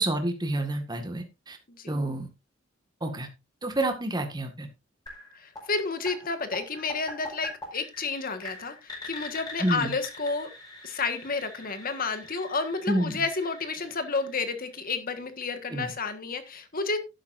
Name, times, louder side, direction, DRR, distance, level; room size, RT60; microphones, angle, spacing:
voice 1, 0.0-1.6 1.9-2.3 3.0-3.3 3.6-4.7 9.6-9.9 12.9-13.2 15.7-15.9, right 1 dB, 20° right, 5 dB, 1.8 m, -28 dB
sound 1, 5.1-14.9, left 2 dB, 20° left, 5.1 m, -44 dB
voice 2, 5.3-10.5 10.8-17.0, left 4 dB, 45° left, 9 dB, 1.6 m, -31 dB
11.5 x 11.0 x 2.6 m, 0.26 s
head